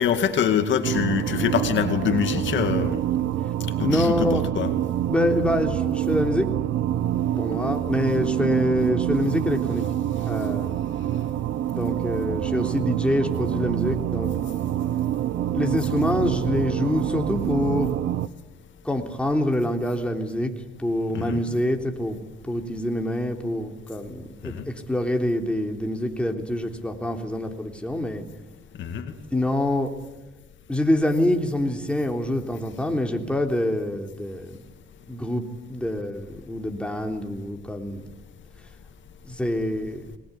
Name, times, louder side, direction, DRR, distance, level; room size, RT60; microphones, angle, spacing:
voice 1, 0.0-3.0 3.8-4.7 21.1-21.4 24.4-24.7 28.8-29.1, left 8 dB, 70° left, 7 dB, 2.2 m, -24 dB
sound 1, 0.8-18.3, right 12 dB, 75° right, 1.1 m, -26 dB
voice 2, 3.8-4.4 5.1-6.5 7.4-9.8 10.3-10.7 11.7-14.3 15.5-18.0 18.8-20.5 20.8-22.2 22.5-28.2 29.3-29.9 30.7-34.6 35.1-35.4 35.7-38.0 39.2-40.1, left 1 dB, 5° left, 3 dB, 3.5 m, -26 dB
24.5 x 20.5 x 9.8 m, 1.1 s
cardioid pair, 90°, 20 cm